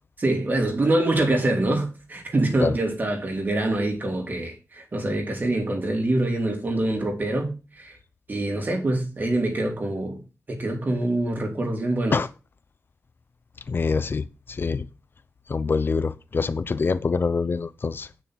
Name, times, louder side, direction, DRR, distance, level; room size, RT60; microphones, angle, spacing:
voice 1, 0.2-8.0 8.3-10.2 10.5-12.2, right 2 dB, 40° right, 3.3 m, -25 dB
voice 2, 13.7-14.2 14.6-14.8 15.5-18.1, left 4 dB, 45° left, 0.8 m, -24 dB
9.5 x 6.4 x 6.3 m
wide cardioid pair, 150°, 5 cm